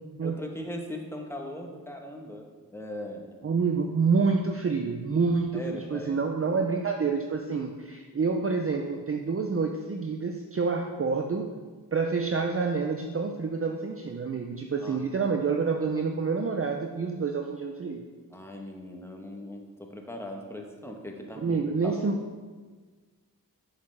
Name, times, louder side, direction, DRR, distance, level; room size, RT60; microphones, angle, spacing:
voice 1, 0.2-2.5 2.7-3.4 5.5-6.2 14.8-15.0 18.3-22.1, left 1 dB, 5° left, 1 dB, 1.0 m, -39 dB
voice 2, 3.4-11.6 11.9-18.0 21.4-22.2, right 4 dB, 40° right, 4 dB, 0.5 m, -28 dB
6.8 x 6.6 x 3.3 m, 1.4 s
wide cardioid pair, 65°, 38 cm